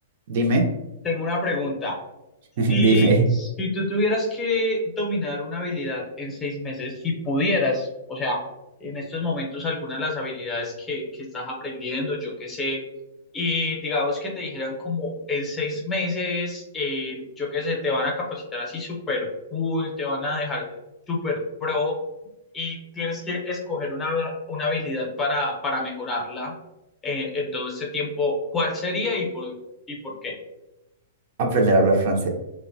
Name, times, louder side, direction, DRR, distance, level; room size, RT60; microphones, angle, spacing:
voice 1, 0.3-0.7 2.6-3.2 31.4-32.3, right 2 dB, 55° right, 2 dB, 0.5 m, -19 dB
voice 2, 1.0-2.0 2.7-8.4 8.8-12.8 13.3-20.7 21.1-21.9 22.5-26.5 27.0-29.5 29.9-30.3, left 2 dB, 20° left, -1 dB, 0.7 m, -27 dB
2.9 x 2.1 x 2.6 m, 0.94 s
hypercardioid pair, 130°, 0 cm